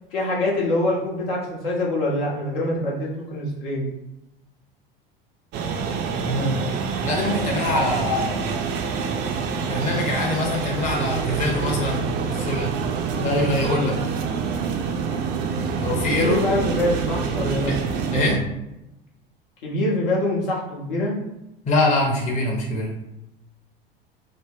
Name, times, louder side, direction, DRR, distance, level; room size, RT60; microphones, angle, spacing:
voice 1, 0.1-3.9 16.1-17.8 19.6-21.2, left 1 dB, 65° left, -4 dB, 1.1 m, -24 dB
sound 1, 5.5-18.4, right 5 dB, 40° right, 0.5 m, -26 dB
voice 2, 6.2-6.6 7.0-8.5 9.6-12.0 12.3-12.7 13.1-14.0 15.8-16.4 17.7-17.8 18.1-18.4 21.7-22.9, left 2 dB, 25° left, -2 dB, 0.9 m, -24 dB
3.2 x 2.0 x 3.8 m, 0.91 s
figure-of-eight pair, 75°, 29 cm